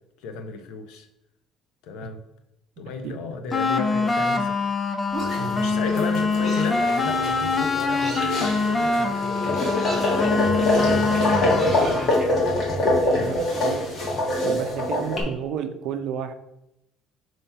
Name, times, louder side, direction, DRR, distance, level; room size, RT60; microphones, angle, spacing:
voice 1, 0.2-1.1 1.8-2.2 2.8-4.6 5.5-9.6 9.9-12.7, left 4 dB, 80° left, 7 dB, 0.8 m, -35 dB
sound 1, 3.5-12.3, left 3 dB, 15° left, 0.5 m, -24 dB
sound 2, 5.1-5.6 6.4-6.9 7.9-8.5 9.7-10.3 11.4-12.2, right 1 dB, ahead, 1.5 m, -35 dB
sound 3, 5.2-15.2, left 1 dB, 35° left, 1.5 m, -25 dB
voice 2, 13.2-13.9 14.4-16.3, right 8 dB, 60° right, 8 dB, 0.6 m, -31 dB
5.6 x 3.1 x 5.5 m, 0.83 s
cardioid pair, 165°, 0 cm